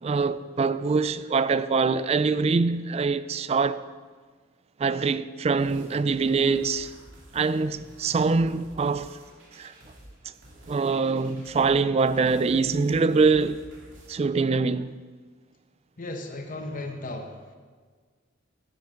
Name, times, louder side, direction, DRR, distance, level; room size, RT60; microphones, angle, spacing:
voice 1, 0.0-3.8 4.8-6.9 7.3-9.2 9.6-9.7 10.7-13.6 14.1-14.9, right 4 dB, 30° right, 0.3 m, -24 dB
sound 1, 5.6-14.1, equal, 65° right, 2.9 m, -50 dB
voice 2, 16.0-17.5, left 2 dB, 40° left, 0.9 m, -36 dB
12.0 x 9.4 x 5.1 m
head